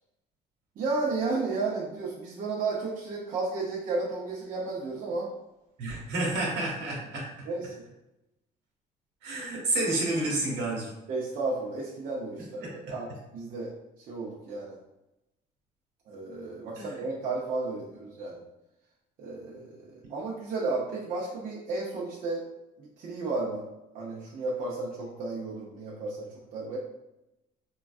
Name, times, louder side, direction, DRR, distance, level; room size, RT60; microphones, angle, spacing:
voice 1, 0.8-5.3 7.5-7.7 11.1-13.1 13.3-13.7 14.1-14.8 16.1-18.4 19.2-22.4 22.8-23.7 23.9-26.8, right 3 dB, 55° right, -5 dB, 0.7 m, -33 dB
voice 2, 5.8-7.3 9.2-10.9 12.6-12.7 16.8-16.9, right 2 dB, 80° right, -3 dB, 1.2 m, -29 dB
3.7 x 2.3 x 2.4 m, 0.92 s
cardioid pair, 110°, 17 cm